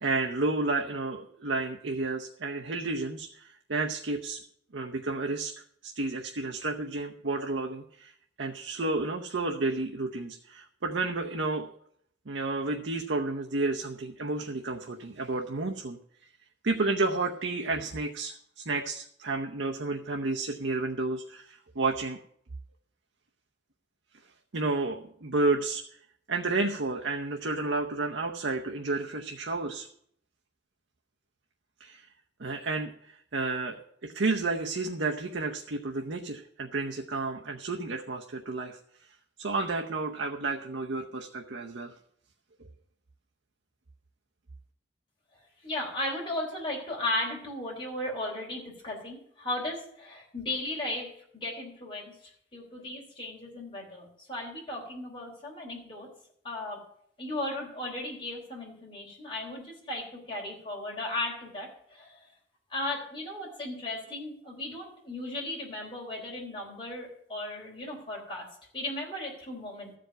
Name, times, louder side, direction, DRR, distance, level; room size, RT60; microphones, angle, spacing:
voice 1, 0.0-4.4 4.7-5.5 5.8-11.7 12.3-16.0 16.6-22.2 24.5-25.8 26.3-29.9 31.8-32.1 32.4-38.8 39.4-41.9 42.6-42.7, right 3 dB, 80° right, 2 dB, 0.8 m, -31 dB
voice 2, 45.6-52.2 52.5-56.1 56.4-56.8 57.2-62.3 62.7-68.5 68.7-69.9, left 1 dB, 25° left, -3 dB, 3.8 m, -36 dB
13.5 x 5.1 x 9.0 m, 0.66 s
head